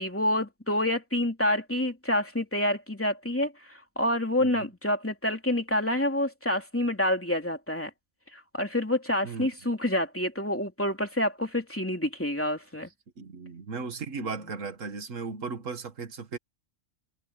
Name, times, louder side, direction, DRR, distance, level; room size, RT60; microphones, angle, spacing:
voice 1, 0.0-7.9 8.3-12.9, left 1 dB, 10° left, 2.9 m, -28 dB
voice 2, 13.2-16.4, right 4 dB, 70° right, 2.2 m, -36 dB
omnidirectional pair, 1.4 m